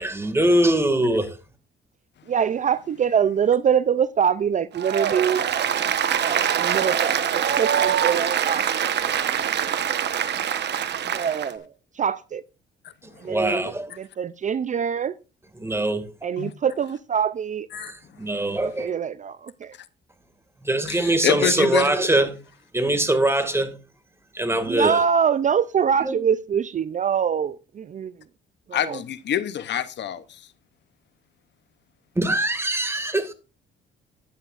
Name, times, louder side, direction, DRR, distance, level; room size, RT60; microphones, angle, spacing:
voice 1, 0.0-1.4 13.2-13.9 15.6-16.0 17.8-18.9 20.6-22.3 22.7-23.7 24.3-25.0 26.0-26.1 32.2-33.3, right 1 dB, 10° right, 2.1 m, -22 dB
voice 2, 2.3-5.4 6.2-7.3 7.6-8.8 11.1-11.7 11.9-12.4 13.2-13.5 14.0-15.1 16.2-17.7 18.6-19.7 24.7-28.1 28.7-29.0, right 7 dB, 40° right, 0.5 m, -24 dB
Applause, 4.7-11.5, right 9 dB, 60° right, 1.2 m, -24 dB
voice 3, 20.9-21.9 28.7-30.5, left 10 dB, 60° left, 0.9 m, -26 dB
14.5 x 10.0 x 2.5 m
cardioid pair, 90°, 20 cm